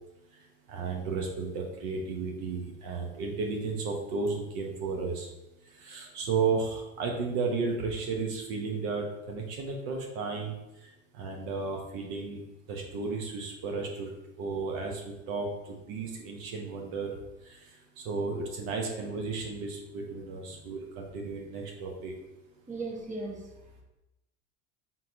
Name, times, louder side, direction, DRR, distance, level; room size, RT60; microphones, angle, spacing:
voice 1, 0.7-5.3 5.8-10.5 11.1-12.4 12.7-14.1 14.4-17.1 17.4-17.6 18.0-22.1, right 4 dB, 65° right, 1 dB, 1.0 m, -33 dB
voice 2, 22.6-23.8, right 3 dB, 20° right, 0 dB, 0.9 m, -39 dB
4.2 x 3.8 x 2.6 m, 0.94 s
hypercardioid pair, 80°, 35 cm